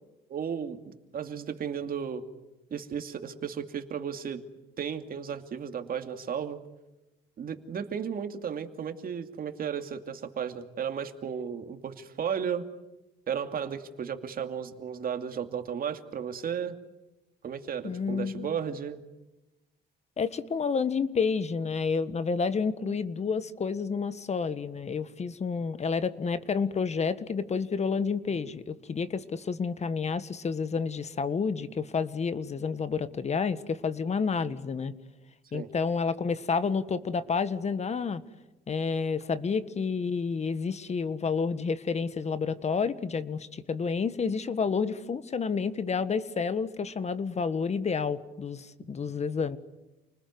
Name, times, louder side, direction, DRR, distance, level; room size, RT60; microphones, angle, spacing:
voice 1, 0.3-2.2 2.7-4.4 4.8-6.6 7.4-12.7 13.3-16.8 17.4-19.0 28.3-28.4 35.5-35.7 48.9-49.0, right 7 dB, 55° right, 7 dB, 2.6 m, -34 dB
voice 2, 17.8-18.5 20.2-34.9 35.5-38.2 38.7-49.6, left 5 dB, 40° left, 13 dB, 1.6 m, -30 dB
29.5 x 20.5 x 9.7 m, 1.0 s
cardioid pair, 100°, 18 cm